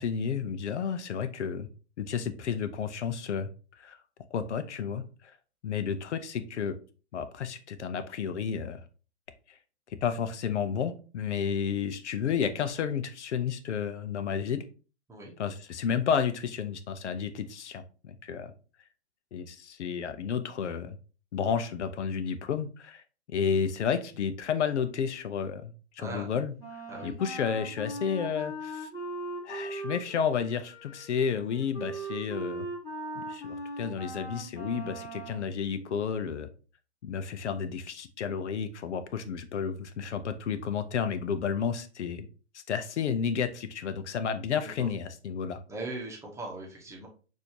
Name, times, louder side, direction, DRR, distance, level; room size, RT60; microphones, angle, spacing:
voice 1, 0.0-1.7 2.0-3.5 3.8-4.0 4.3-5.3 5.6-6.8 7.1-8.8 9.5-9.6 10.0-14.6 15.4-18.5 19.3-21.0 21.3-23.0 23.3-26.5 27.0-28.9 29.4-32.7 33.2-36.5 37.0-42.3 42.5-45.6, left 7 dB, 80° left, 11 dB, 0.7 m, -31 dB
voice 2, 26.0-26.3 26.9-27.1 44.5-44.9 45.7-47.1, right 2 dB, 10° right, -2 dB, 0.9 m, -40 dB
Wind instrument woodwind instrument, 26.6-35.5, right 2 dB, 10° left, 1.5 m, -39 dB
6.2 x 2.7 x 2.8 m, 0.37 s
hypercardioid pair, 135°, 34 cm